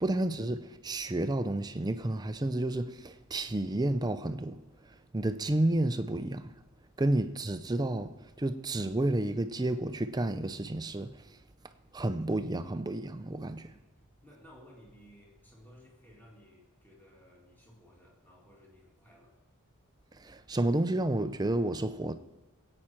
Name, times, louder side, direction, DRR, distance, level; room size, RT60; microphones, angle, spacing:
voice 1, 0.0-6.5 7.0-11.4 11.9-13.7 20.1-22.1, right 1 dB, 20° right, 0.5 m, -31 dB
voice 2, 14.2-19.4, equal, 10° left, 2.4 m, -57 dB
21.5 x 8.8 x 4.5 m
head